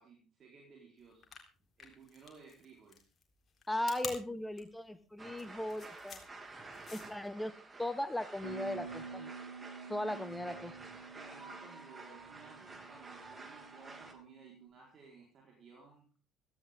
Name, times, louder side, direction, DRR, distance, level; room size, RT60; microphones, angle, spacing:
voice 1, 0.0-1.3 1.8-3.0 11.1-16.1, right 4 dB, 40° right, -1 dB, 4.5 m, -58 dB
sound 1, 1.1-7.3, left 6 dB, 35° left, 3.8 m, -48 dB
voice 2, 3.7-6.2 6.9-7.5 7.8-9.3 9.9-10.7, left 1 dB, 5° left, 12 dB, 1.4 m, -37 dB
sound 2, 5.2-14.1, right 3 dB, 20° right, 2.8 m, -51 dB
Bass guitar, 8.4-14.7, right 4 dB, 90° left, 1.1 m, -50 dB
17.0 x 14.0 x 3.8 m, 0.35 s
figure-of-eight pair, 60°, 0 cm